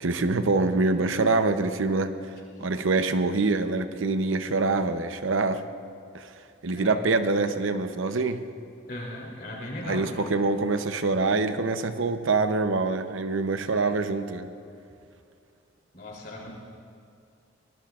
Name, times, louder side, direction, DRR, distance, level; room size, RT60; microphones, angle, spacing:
voice 1, 0.0-2.1 2.6-5.6 6.1-6.3 6.6-8.4 9.9-14.5, right 3 dB, 80° right, 9 dB, 0.7 m, -25 dB
voice 2, 6.7-7.1 8.9-10.3 13.7-14.0 15.9-16.6, left 1 dB, 50° left, -3 dB, 3.3 m, -38 dB
23.5 x 18.5 x 2.5 m, 2.5 s
head